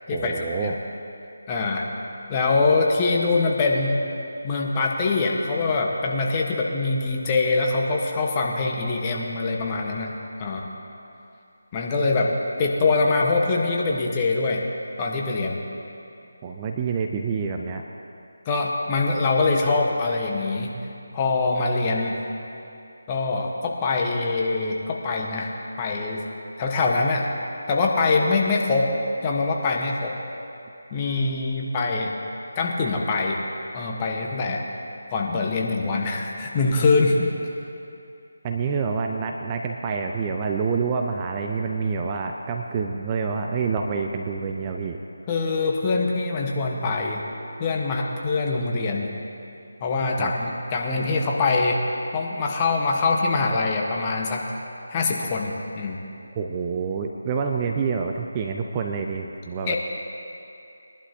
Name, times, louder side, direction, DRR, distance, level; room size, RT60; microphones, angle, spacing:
voice 1, 0.1-0.8 16.4-17.8 38.4-45.0 50.2-50.3 56.3-59.7, right 5 dB, 20° right, 3 dB, 0.6 m, -27 dB
voice 2, 1.5-1.9 2.3-4.0 4.4-10.1 10.4-10.7 11.7-14.6 15.0-15.6 18.4-20.7 21.1-22.2 23.1-25.5 25.8-26.2 26.6-27.3 27.7-28.9 29.2-30.2 30.9-32.2 32.6-33.4 33.7-34.6 35.1-37.3 45.3-47.3 47.6-49.1 49.8-51.8 52.1-54.4 54.9-56.0 59.7-59.8, left 3 dB, 25° left, -1 dB, 1.3 m, -23 dB
22.0 x 11.5 x 2.9 m, 2.7 s
figure-of-eight pair, 160°, 0 cm